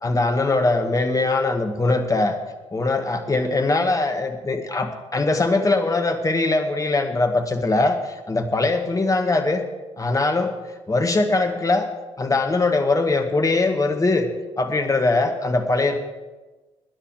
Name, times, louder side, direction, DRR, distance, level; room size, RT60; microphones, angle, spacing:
voice 1, 0.0-2.4 2.7-9.6 10.0-10.5 10.9-11.9 12.2-14.3 14.6-16.0, left 2 dB, 20° left, 5 dB, 1.9 m, -21 dB
20.0 x 9.9 x 5.0 m, 1.2 s
figure-of-eight pair, 50°, 15 cm